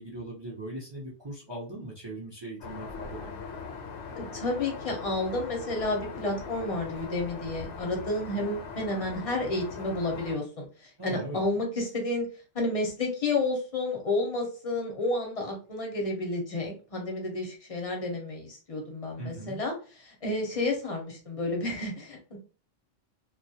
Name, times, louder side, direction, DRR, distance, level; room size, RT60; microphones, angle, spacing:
voice 1, 0.0-3.7 11.0-11.4 19.2-19.6, right 1 dB, 35° right, -4 dB, 0.4 m, -40 dB
Aircraft, 2.6-10.4, left 5 dB, 75° left, 0.9 m, -40 dB
voice 2, 4.2-10.7 11.0-12.3 12.5-19.7 20.1-22.4, left 2 dB, 40° left, 1 dB, 0.6 m, -31 dB
2.2 x 2.0 x 2.7 m, 0.36 s
omnidirectional pair, 1.2 m